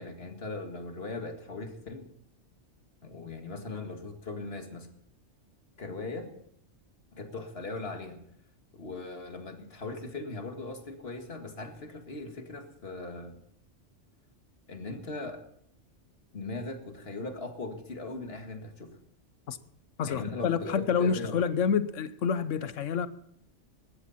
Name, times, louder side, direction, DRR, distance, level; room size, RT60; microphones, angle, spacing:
voice 1, 0.0-2.1 3.0-4.9 5.8-6.3 7.1-8.2 8.7-13.4 14.7-15.4 16.3-19.0 20.0-20.7 21.0-21.4, left 3 dB, 55° left, 2.2 m, -39 dB
voice 2, 20.0-23.1, left 6 dB, 85° left, 1.2 m, -28 dB
19.0 x 14.5 x 4.2 m
omnidirectional pair, 1.3 m